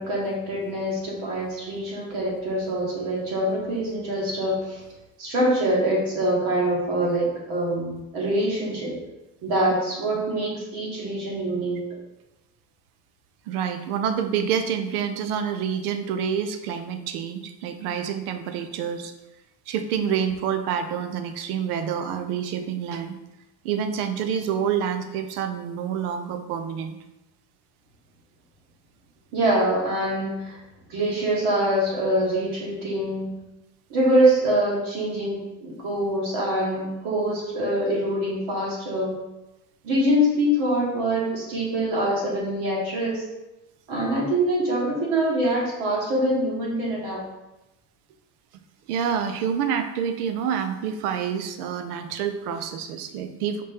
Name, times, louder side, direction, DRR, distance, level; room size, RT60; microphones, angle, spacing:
voice 1, 0.0-4.8 5.2-9.0 9.4-11.8 29.3-30.6 30.9-33.3 33.9-39.2 39.8-43.2 43.9-47.2, right 1 dB, 50° right, -2 dB, 1.2 m, -24 dB
voice 2, 13.5-19.1 19.7-23.1 23.6-27.0 48.9-53.6, right 8 dB, 75° right, 8 dB, 0.6 m, -27 dB
5.1 x 2.8 x 3.4 m, 0.97 s
cardioid pair, 165°, 45 cm